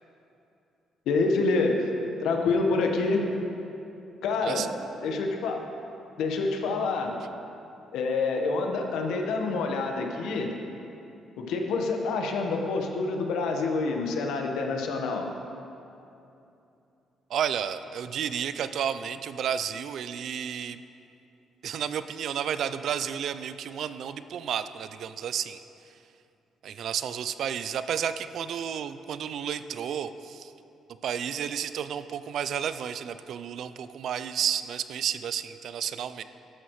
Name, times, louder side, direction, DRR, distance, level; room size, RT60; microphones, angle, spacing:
voice 1, 1.1-1.9 2.2-3.3 4.2-4.6 5.0-5.6 6.2-7.1 7.9-10.5 11.4-15.2, left 3 dB, 85° left, 2 dB, 1.2 m, -27 dB
voice 2, 17.3-20.8 21.6-25.6 26.6-30.5 31.0-36.2, right 8 dB, 70° right, 12 dB, 0.4 m, -31 dB
13.0 x 12.0 x 3.2 m, 2.8 s
cardioid pair, 90°, 0 cm